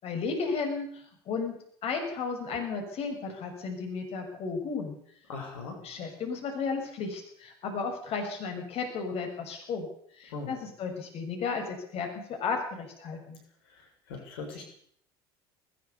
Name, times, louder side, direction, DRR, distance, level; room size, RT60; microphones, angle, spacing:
voice 1, 0.0-1.6 1.8-5.0 5.8-9.9 10.1-13.4, left 5 dB, 50° left, 4 dB, 6.6 m, -34 dB
voice 2, 5.3-5.8 10.3-10.5 13.7-14.6, left 4 dB, 75° left, 4 dB, 6.9 m, -40 dB
20.0 x 19.5 x 7.0 m, 0.65 s
hypercardioid pair, 70°, 13 cm